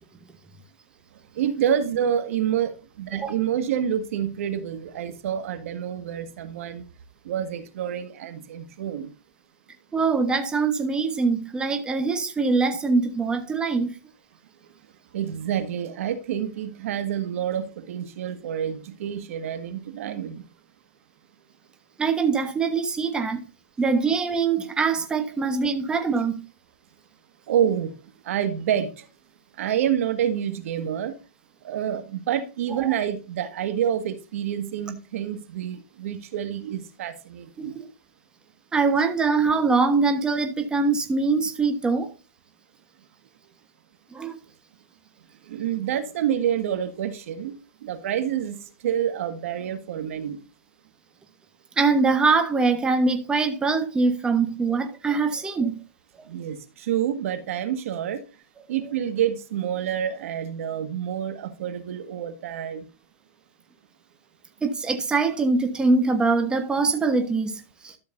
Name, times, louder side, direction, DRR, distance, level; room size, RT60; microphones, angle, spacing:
voice 1, 1.4-2.7 3.0-6.8 7.3-9.1 15.1-20.4 27.5-27.9 28.3-29.0 29.6-31.1 31.6-37.7 45.5-47.5 47.8-50.4 56.3-58.2 58.7-62.9, right 9 dB, 65° right, 1.8 m, -28 dB
voice 2, 9.9-13.9 22.0-23.4 23.8-26.4 32.7-33.0 37.6-37.9 38.7-42.1 44.1-44.4 51.8-55.8 64.6-68.0, right 4 dB, 10° right, 1.3 m, -23 dB
12.5 x 6.7 x 2.6 m
hypercardioid pair, 140°, 8 cm